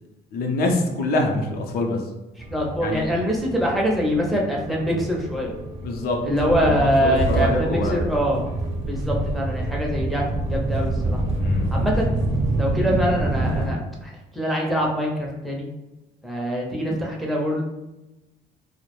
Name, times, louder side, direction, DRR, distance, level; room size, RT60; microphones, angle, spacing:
voice 1, 0.3-2.0 2.8-3.1 5.8-6.2 6.6-8.0 11.4-11.7, left 2 dB, 65° left, 2 dB, 0.5 m, -25 dB
voice 2, 2.4-5.5 6.2-8.4 8.8-11.2 11.7-12.1 12.6-15.7 16.2-17.6, equal, ahead, -2 dB, 0.5 m, -24 dB
sound 1, 2.4-13.7, right 2 dB, 40° right, 0.7 m, -27 dB
2.2 x 2.1 x 3.0 m, 0.98 s
cardioid pair, 110°, 17 cm